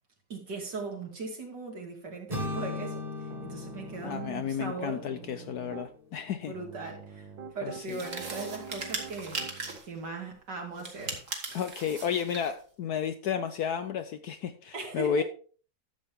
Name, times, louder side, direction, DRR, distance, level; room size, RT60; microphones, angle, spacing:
voice 1, 0.3-5.1 6.4-7.3 7.5-9.5 9.9-11.2 11.5-11.6 14.7-15.2, right 3 dB, 60° right, 1 dB, 3.0 m, -39 dB
sound 1, 2.3-6.3, left 2 dB, 20° right, 2.1 m, -39 dB
Piano, 3.3-4.4 4.8-5.9 6.5-9.8, right 6 dB, 75° right, 1.9 m, -45 dB
voice 2, 4.0-6.5 7.6-8.0 11.5-15.2, left 8 dB, 65° left, 9 dB, 1.0 m, -32 dB
sound 2, 7.9-9.9 10.8-12.6, right 3 dB, 40° right, 1.9 m, -38 dB
12.5 x 7.5 x 3.6 m, 0.41 s
omnidirectional pair, 2.1 m